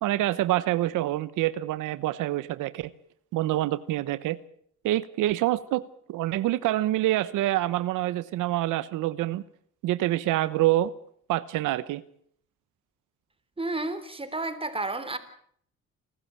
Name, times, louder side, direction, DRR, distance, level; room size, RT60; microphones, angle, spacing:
voice 1, 0.0-2.9 3.3-4.4 4.8-5.8 6.1-9.4 9.8-10.9 11.3-12.0, right 15 dB, 90° right, 16 dB, 0.9 m, -26 dB
voice 2, 13.6-15.2, right 2 dB, 20° right, 11 dB, 3.5 m, -31 dB
28.5 x 13.5 x 8.7 m, 0.64 s
cardioid pair, 90°, 30 cm